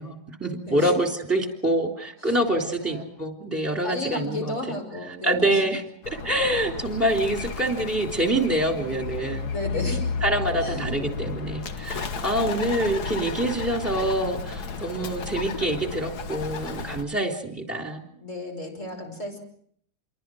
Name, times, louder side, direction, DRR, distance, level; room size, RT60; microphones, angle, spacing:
voice 1, 0.0-4.8 5.1-9.5 10.2-18.0, right 1 dB, 10° right, 2 dB, 3.2 m, -26 dB
voice 2, 2.3-3.1 3.8-5.6 9.3-10.0 10.6-10.8 18.0-19.4, left 1 dB, 45° left, 2 dB, 5.9 m, -34 dB
Bird, 6.0-17.0, left 5 dB, 75° left, 1.9 m, -33 dB
28.0 x 23.0 x 6.3 m, 0.65 s
omnidirectional pair, 1.8 m